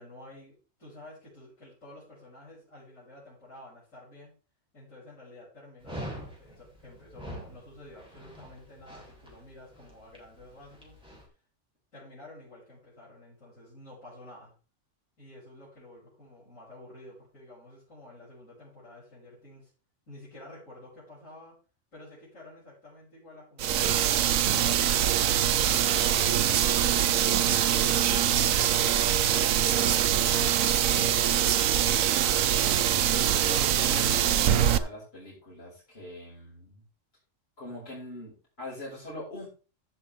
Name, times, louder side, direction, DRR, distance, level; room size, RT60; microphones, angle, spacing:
voice 1, 0.0-4.4 4.7-11.0 11.9-14.5 15.2-19.7 20.1-21.6 21.9-25.1 25.5-30.2 30.8-32.9, left 1 dB, 80° left, -10 dB, 6.9 m, -50 dB
Dog, 5.8-11.2, equal, 5° right, 3.7 m, -44 dB
sound 1, 23.6-34.8, right 10 dB, 90° right, 1.1 m, -24 dB
Whispering, 24.5-32.0, right 8 dB, 55° right, 0.8 m, -37 dB
voice 2, 33.2-36.8 37.6-39.5, left 1 dB, 50° left, -6 dB, 5.7 m, -42 dB
15.0 x 6.9 x 3.4 m, 0.34 s
omnidirectional pair, 1.3 m